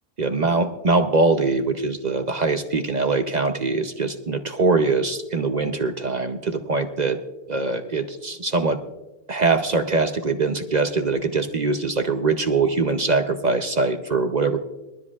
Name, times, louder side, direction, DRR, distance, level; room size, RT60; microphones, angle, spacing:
voice 1, 0.2-7.2 7.5-8.8 9.3-14.6, right 3 dB, 50° right, 7 dB, 0.5 m, -22 dB
22.5 x 12.5 x 2.4 m, 1.0 s
omnidirectional pair, 1.7 m